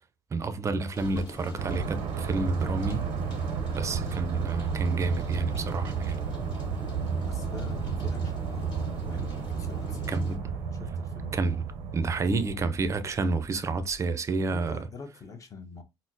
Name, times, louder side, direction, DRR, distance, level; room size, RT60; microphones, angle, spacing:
voice 1, 0.3-3.0 3.7-6.2 9.1-9.2 10.1-10.4 11.3-11.6 11.9-14.8, right 3 dB, 30° right, 0.4 m, -29 dB
Rain, 0.9-10.4, left 1 dB, 50° left, 1.8 m, -44 dB
sound 1, 1.6-13.2, right 6 dB, 90° right, 0.5 m, -32 dB
sound 2, 6.3-14.0, left 3 dB, 70° left, 1.0 m, -49 dB
voice 2, 7.1-11.5 14.5-15.8, left 4 dB, 35° left, 0.8 m, -45 dB
4.1 x 2.0 x 2.6 m
cardioid pair, 105°, 10 cm